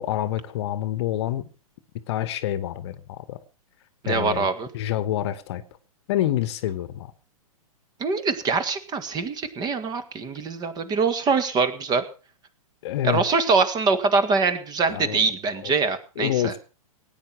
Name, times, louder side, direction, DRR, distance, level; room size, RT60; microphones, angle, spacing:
voice 1, 0.0-1.5 2.1-3.4 4.1-4.5 4.7-5.6 6.1-7.1 12.8-13.2 14.9-15.3 15.6-15.7 16.2-16.6, left 12 dB, 45° left, 1.2 m, -27 dB
voice 2, 4.0-4.7 8.0-12.0 13.0-16.5, right 4 dB, 20° right, 1.9 m, -23 dB
18.5 x 9.6 x 5.9 m
figure-of-eight pair, 115°, 19 cm